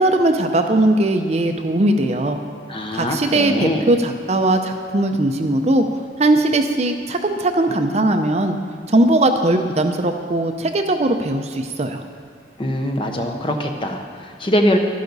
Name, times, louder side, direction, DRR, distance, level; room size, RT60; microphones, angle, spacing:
voice 1, 0.0-2.4 2.9-5.8 6.2-8.6 8.9-12.0, right 1 dB, 35° right, 6 dB, 0.6 m, -19 dB
voice 2, 2.7-3.9 12.6-14.8, equal, 30° left, 3 dB, 0.9 m, -22 dB
12.0 x 11.5 x 4.0 m, 2.1 s
head